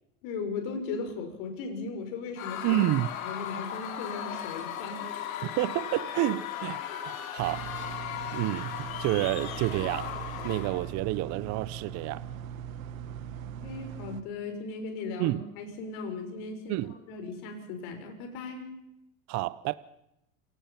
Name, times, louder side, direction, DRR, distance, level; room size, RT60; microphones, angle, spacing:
voice 1, 0.2-2.9 3.2-5.1 13.6-16.8 17.1-18.7, left 4 dB, 60° left, 6.3 m, -37 dB
Screaming / Cheering / Crowd, 2.4-10.9, left 9 dB, 90° left, 3.5 m, -37 dB
voice 2, 2.6-3.1 5.4-7.9 8.3-10.1 10.4-12.2 15.2-15.4 16.7-17.0 19.3-19.7, right 16 dB, 45° right, 0.7 m, -29 dB
sound 1, 7.4-14.2, right 8 dB, 85° right, 1.7 m, -40 dB
27.5 x 18.0 x 5.8 m
supercardioid pair, 125°, 40 cm